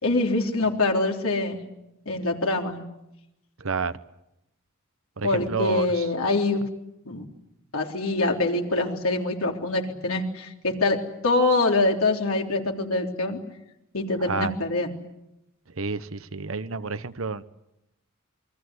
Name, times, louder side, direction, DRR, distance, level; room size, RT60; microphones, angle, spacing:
voice 1, 0.0-1.6 2.1-2.8 5.2-6.6 7.1-7.2 7.7-11.0 11.2-13.4 13.9-14.9, left 2 dB, 85° left, 3.6 m, -24 dB
voice 2, 3.6-3.9 5.2-6.0 14.3-14.5 15.8-17.4, right 4 dB, 70° right, 1.0 m, -29 dB
28.5 x 22.5 x 8.1 m
head